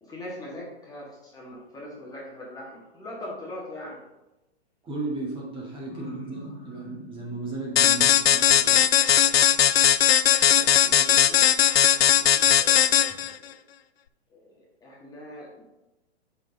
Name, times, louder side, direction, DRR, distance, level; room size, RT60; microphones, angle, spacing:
voice 1, 0.0-4.0 5.9-7.4 10.6-11.4 12.2-13.6 14.3-15.6, left 1 dB, 10° left, -5 dB, 1.6 m, -42 dB
voice 2, 4.8-6.4 6.7-8.8 13.1-13.2, right 3 dB, 15° right, -3 dB, 1.8 m, -35 dB
sound 1, 7.8-13.3, left 10 dB, 65° left, 0.5 m, -19 dB
7.4 x 5.7 x 3.8 m, 0.97 s
figure-of-eight pair, 115°, 32 cm